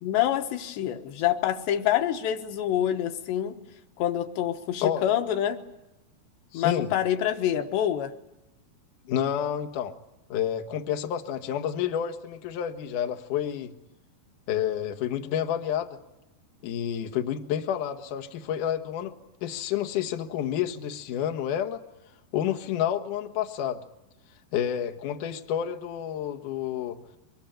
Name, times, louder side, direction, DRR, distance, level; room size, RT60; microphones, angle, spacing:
voice 1, 0.0-3.5 4.0-5.6 6.5-8.1, left 11 dB, 90° left, 7 dB, 3.4 m, -26 dB
voice 2, 6.5-6.9 9.1-9.9 10.3-13.7 14.5-15.9 16.6-19.1 19.4-21.8 22.3-23.8 24.5-27.0, left 9 dB, 60° left, 6 dB, 2.6 m, -29 dB
23.5 x 21.0 x 9.0 m, 0.94 s
omnidirectional pair, 4.8 m